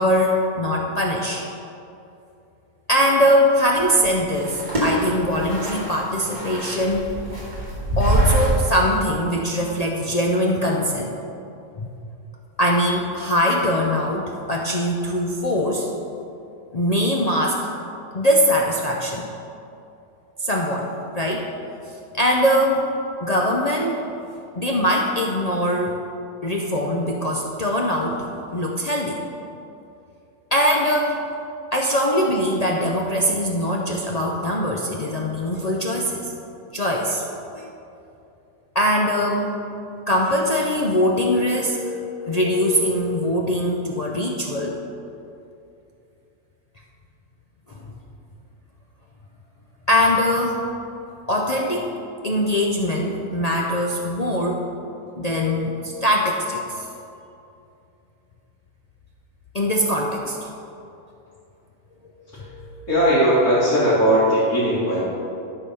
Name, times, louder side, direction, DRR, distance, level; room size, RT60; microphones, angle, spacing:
voice 1, 0.0-1.4 2.9-7.1 8.0-11.1 11.8-11.9 12.6-15.9 16.7-17.7 18.1-19.3 20.4-20.9 21.2-21.5 22.1-22.9 23.2-24.0 24.5-26.0 26.4-28.2 28.5-29.2 30.5-31.2 31.7-36.3 36.7-37.2 37.6-37.7 38.7-39.6 40.1-44.8 49.9-50.8 51.3-51.9 52.2-54.6 55.2-56.8 59.5-60.5 62.4-62.9, equal, 55° left, -1 dB, 0.4 m, -22 dB
sound 1, 3.8-8.7, right 1 dB, 30° right, 2.4 m, -24 dB
voice 2, 62.9-65.0, equal, 75° left, -11 dB, 2.6 m, -18 dB
12.0 x 4.6 x 5.5 m, 2.7 s
omnidirectional pair, 1.5 m